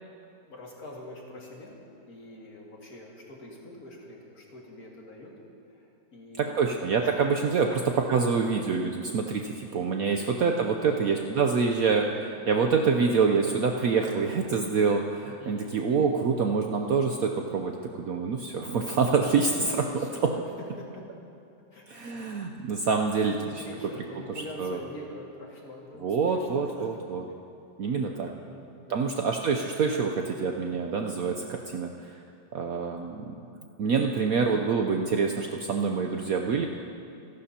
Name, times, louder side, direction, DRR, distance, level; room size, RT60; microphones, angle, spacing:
voice 1, 0.5-1.8 2.1-5.3 5.7-7.4 7.6-7.8 10.1-11.4 15.4-15.7 17.6-18.0 19.3-20.3 20.8-20.9 21.7-22.4 23.1-23.3 23.6-27.0 28.4-29.1 30.5-30.8, left 1 dB, 50° left, -3 dB, 2.5 m, -45 dB
voice 2, 6.4-7.7 8.1-19.7 21.9-23.4 24.6-24.8 26.0-27.2 27.8-28.3 28.9-32.2 32.5-33.4 33.8-36.7, right 5 dB, 65° right, 3 dB, 0.9 m, -26 dB
28.0 x 12.0 x 2.8 m, 2.6 s
omnidirectional pair, 2.0 m